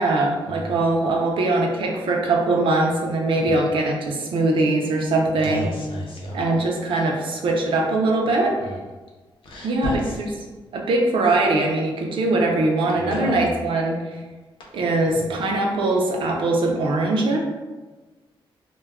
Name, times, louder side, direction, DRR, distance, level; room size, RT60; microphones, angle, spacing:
voice 1, 0.0-5.7 6.3-8.6 9.6-10.3 10.7-14.0 14.7-17.4, right 2 dB, 70° right, 0 dB, 0.5 m, -21 dB
voice 2, 5.4-6.3 9.5-9.9 13.0-13.4, equal, 65° left, -3 dB, 0.7 m, -30 dB
2.2 x 2.2 x 3.4 m, 1.3 s
wide cardioid pair, 155°, 9 cm